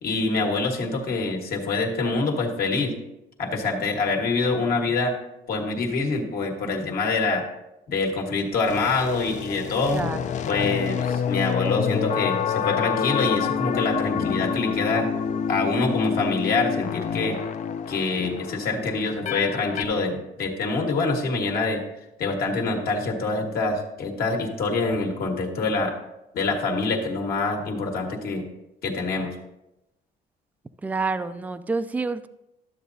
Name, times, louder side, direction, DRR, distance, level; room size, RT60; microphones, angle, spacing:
voice 1, 0.0-3.0 3.4-5.1 5.5-7.4 7.9-10.0 10.5-15.1 15.5-17.4 17.9-21.8 22.2-25.9 26.3-28.5 28.8-29.4, left 3 dB, 60° left, 1 dB, 1.6 m, -25 dB
sound 1, 8.7-19.8, left 7 dB, 45° left, 0.5 m, -27 dB
voice 2, 9.9-10.3 30.8-32.3, right 3 dB, 10° right, 11 dB, 0.3 m, -28 dB
12.0 x 7.4 x 2.7 m, 0.91 s
cardioid pair, 110°, 17 cm